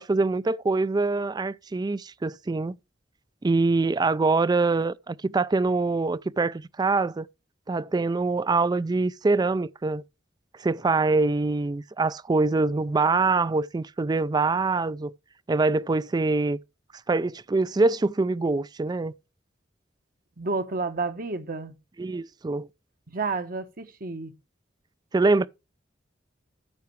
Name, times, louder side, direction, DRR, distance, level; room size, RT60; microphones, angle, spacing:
voice 1, 0.0-2.8 3.4-7.3 7.7-10.0 10.6-15.1 15.5-16.6 17.1-19.1 22.0-22.7 25.1-25.4, right 3 dB, 20° right, 0.3 m, -24 dB
voice 2, 20.4-21.8 23.1-24.3, right 3 dB, 50° right, 1.0 m, -30 dB
13.0 x 5.8 x 3.2 m
head